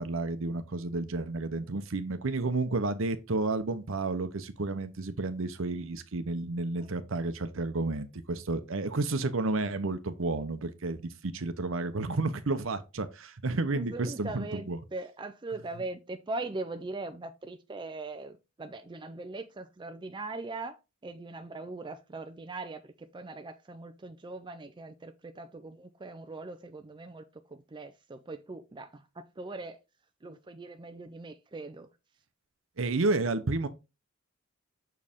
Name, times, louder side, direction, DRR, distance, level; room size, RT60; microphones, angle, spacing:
voice 1, 0.0-14.8 32.8-33.7, right 3 dB, 65° right, 0.8 m, -31 dB
voice 2, 13.7-29.8 30.2-31.9, right 2 dB, 20° right, 0.4 m, -41 dB
6.1 x 4.7 x 3.5 m
head